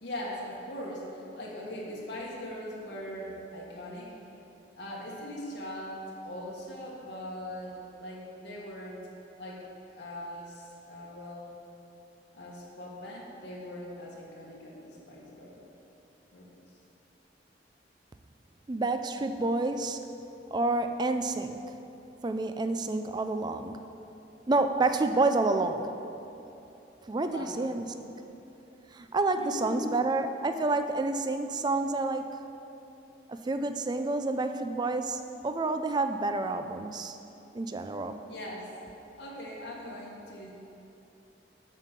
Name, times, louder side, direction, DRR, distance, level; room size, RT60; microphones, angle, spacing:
voice 1, 0.0-4.1 4.8-9.1 9.4-9.6 9.9-11.5 12.3-15.6 16.3-16.5 27.3-27.6 29.4-30.0 38.3-38.7 39.2-40.5, left 1 dB, 75° left, -4 dB, 1.6 m, -40 dB
voice 2, 18.7-20.1 20.5-21.6 22.2-23.8 24.5-25.9 27.1-28.1 28.9-32.4 33.3-37.2 37.5-38.2, right 3 dB, 25° right, 8 dB, 0.4 m, -29 dB
7.3 x 5.6 x 6.8 m, 2.9 s
head